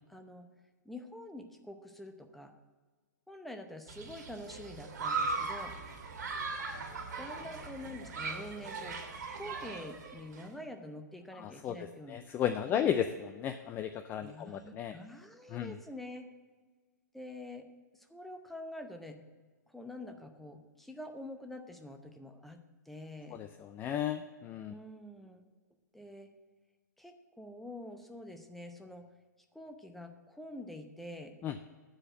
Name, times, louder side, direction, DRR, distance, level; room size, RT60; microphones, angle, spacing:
voice 1, 0.1-0.5 0.8-2.5 3.3-5.7 7.2-12.2 12.7-12.9 14.2-16.3 17.1-17.7 17.9-19.2 19.7-22.6 22.9-23.4 24.7-25.4 25.9-26.3 27.0-29.0 29.5-31.3, left 1 dB, ahead, 5 dB, 0.7 m, -46 dB
Human group actions, 3.9-10.5, right 4 dB, 65° right, 1.8 m, -39 dB
voice 2, 11.4-11.8 12.1-15.0 15.5-15.7 23.3-24.7 31.4-31.6, left 9 dB, 20° left, 9 dB, 0.3 m, -34 dB
8.5 x 5.0 x 7.5 m, 1.4 s
hypercardioid pair, 130°, 10 cm